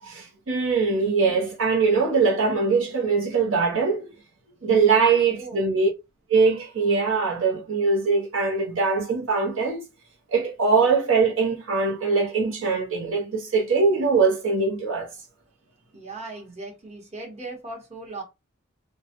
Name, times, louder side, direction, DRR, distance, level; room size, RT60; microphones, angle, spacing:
voice 1, 0.0-4.1 4.6-5.9 6.3-9.9 10.3-15.1, right 4 dB, 70° right, 0.7 m, -22 dB
voice 2, 5.2-5.7 15.9-18.2, right 2 dB, 30° right, 1.0 m, -38 dB
2.2 x 2.1 x 2.8 m
head